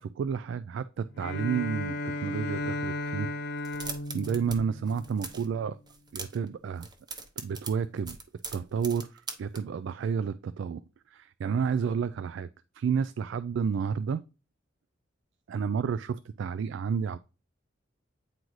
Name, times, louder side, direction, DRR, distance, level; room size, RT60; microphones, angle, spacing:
voice 1, 0.0-3.3 4.1-5.8 6.1-6.9 7.4-8.2 8.5-10.8 11.1-12.5 12.7-14.2 15.5-17.2, right 6 dB, 70° right, 0.3 m, -31 dB
Bowed string instrument, 1.1-5.6, left 2 dB, 60° left, 0.5 m, -35 dB
sound 1, 3.6-4.6 4.8-5.5 5.9-6.5 6.8-9.6, right 4 dB, 20° right, 0.8 m, -40 dB
9.0 x 3.9 x 3.1 m
head